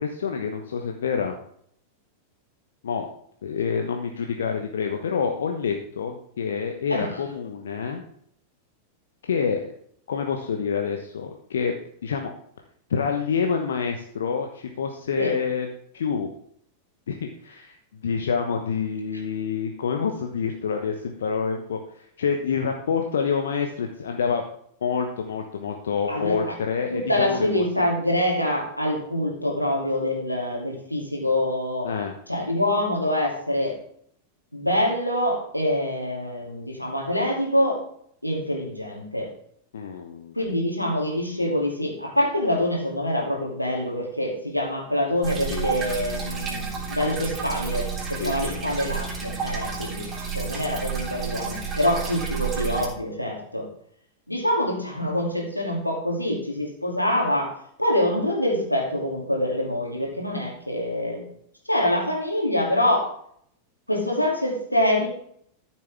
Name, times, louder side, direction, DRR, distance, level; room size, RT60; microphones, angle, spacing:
voice 1, 0.0-1.3 2.8-3.1 3.4-8.0 9.3-9.7 10.1-12.3 12.9-15.7 15.9-16.3 17.1-17.8 18.0-24.5 24.8-27.7 31.8-32.2 39.7-40.4 45.5-45.7 48.2-48.6, left 6 dB, 65° left, 3 dB, 1.0 m, -27 dB
voice 2, 26.1-26.5 26.9-31.9 32.3-33.8 34.5-37.8 38.2-39.3 40.3-50.1 50.3-53.7 54.3-61.3 61.7-63.1 63.9-65.1, left 1 dB, 90° left, -1 dB, 2.6 m, -25 dB
sound 1, 45.2-52.9, right 6 dB, 25° right, 3.4 m, -31 dB
13.5 x 7.5 x 3.5 m, 0.66 s
figure-of-eight pair, 90°, 0 cm